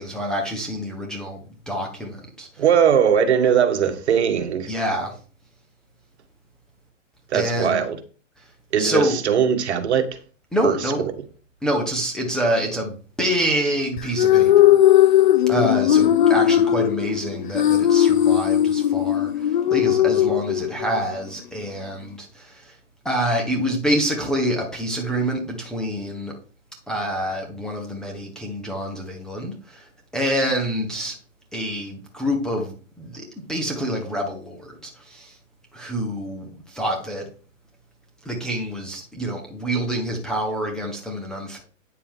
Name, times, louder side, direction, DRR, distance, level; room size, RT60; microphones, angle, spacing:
voice 1, 0.0-2.6 4.7-5.2 7.3-7.8 8.8-9.2 10.5-11.0 11.6-14.8 15.0-15.1 15.5-22.7 23.0-26.3 26.9-31.2 31.5-35.4 35.7-37.2 38.2-41.6, equal, ahead, 0.7 m, -27 dB
voice 2, 2.6-4.7 7.3-8.0 8.7-10.1 10.6-10.8, right 8 dB, 60° right, 1.6 m, -19 dB
sound 1, 14.0-21.0, left 11 dB, 40° left, 0.4 m, -18 dB
9.3 x 6.8 x 3.6 m
hypercardioid pair, 150°, 38 cm